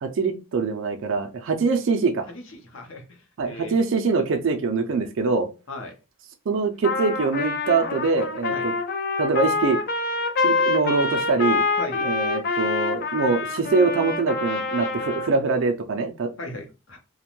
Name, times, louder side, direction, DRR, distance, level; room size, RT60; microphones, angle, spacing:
voice 1, 0.0-2.3 3.4-5.5 6.5-8.7 9.2-9.8 10.4-11.6 12.0-16.3, right 4 dB, 65° right, 4 dB, 0.4 m, -23 dB
voice 2, 2.3-3.1 3.5-3.8 5.7-5.9 8.5-8.7 11.8-12.0 16.4-17.0, left 2 dB, 65° left, 3 dB, 0.7 m, -36 dB
Trumpet, 6.8-15.3, left 3 dB, 45° left, 0.3 m, -26 dB
2.5 x 2.1 x 2.9 m, 0.29 s
head